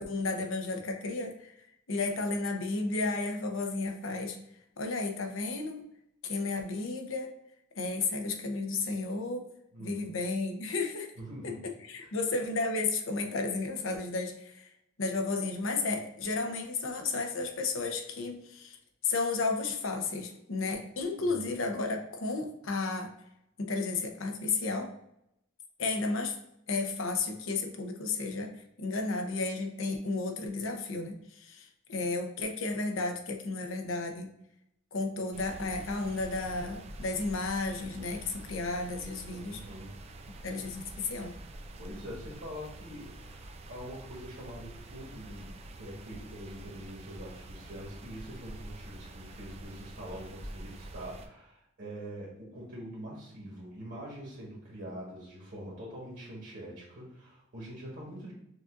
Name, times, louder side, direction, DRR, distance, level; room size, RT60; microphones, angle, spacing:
voice 1, 0.0-1.5 1.9-4.4 4.8-5.8 6.2-7.3 7.8-9.5 9.8-11.1 11.4-14.7 15.0-18.8 19.0-23.1 23.6-24.9 25.8-26.4 26.7-28.5 28.8-34.3 34.9-39.6 40.4-41.3, left 3 dB, 70° left, 4 dB, 0.7 m, -33 dB
voice 2, 9.7-10.1 11.2-11.7 12.0-12.1 21.2-21.5 39.4-39.9 41.8-58.3, equal, 55° right, -4 dB, 1.2 m, -44 dB
sound 1, 35.3-51.3, right 1 dB, 30° right, 0.4 m, -46 dB
6.4 x 2.5 x 2.4 m, 0.78 s
head